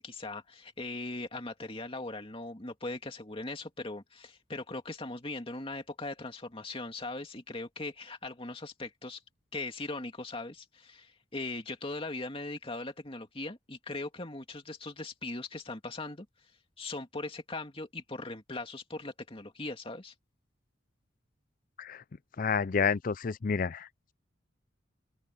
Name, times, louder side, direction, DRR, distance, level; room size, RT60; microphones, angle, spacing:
voice 1, 0.0-9.2 9.5-16.3 16.8-20.1, left 2 dB, 30° left, 2.5 m, -39 dB
voice 2, 22.4-23.9, left 5 dB, 45° left, 0.5 m, -29 dB
head